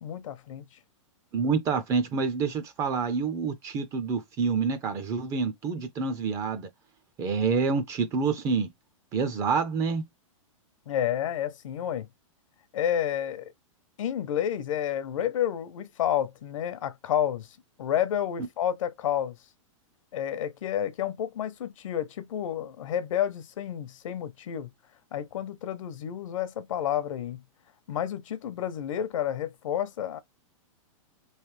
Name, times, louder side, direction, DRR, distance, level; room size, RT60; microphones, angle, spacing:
voice 1, 0.0-0.7 10.9-12.1 12.7-13.5 14.0-17.5 17.8-19.4 20.1-24.7 25.1-27.4 27.9-30.2, left 10 dB, 70° left, 0.7 m, -30 dB
voice 2, 1.3-6.7 7.2-8.7 9.1-10.0, right 5 dB, 20° right, 0.4 m, -27 dB
3.2 x 3.1 x 3.1 m
hypercardioid pair, 160°, 17 cm